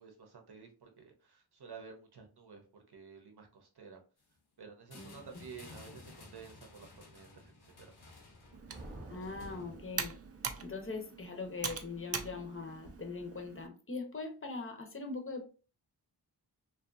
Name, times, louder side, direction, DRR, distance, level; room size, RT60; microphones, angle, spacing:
voice 1, 0.0-4.0 4.6-7.9, right 5 dB, 70° right, 0.7 m, -52 dB
sound 1, 4.9-9.8, left 3 dB, 65° left, 0.7 m, -54 dB
Thunder, 8.3-10.6, right 1 dB, 20° right, 0.7 m, -51 dB
Computer keyboard, 8.5-13.7, right 5 dB, 40° right, 0.4 m, -43 dB
voice 2, 9.1-10.1 10.6-15.4, left 3 dB, 30° left, 0.6 m, -41 dB
2.6 x 2.3 x 2.4 m
wide cardioid pair, 55°, 41 cm